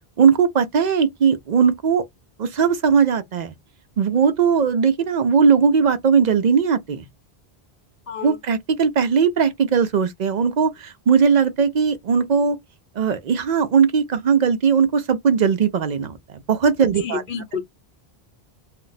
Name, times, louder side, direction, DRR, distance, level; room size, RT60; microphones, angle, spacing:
voice 1, 0.2-2.0 2.4-3.5 4.0-7.1 8.2-12.6 13.0-17.2, right 6 dB, 55° right, 0.5 m, -19 dB
voice 2, 8.1-8.4 17.0-17.6, left 6 dB, 75° left, 1.1 m, -29 dB
2.5 x 2.1 x 3.9 m
omnidirectional pair, 1.1 m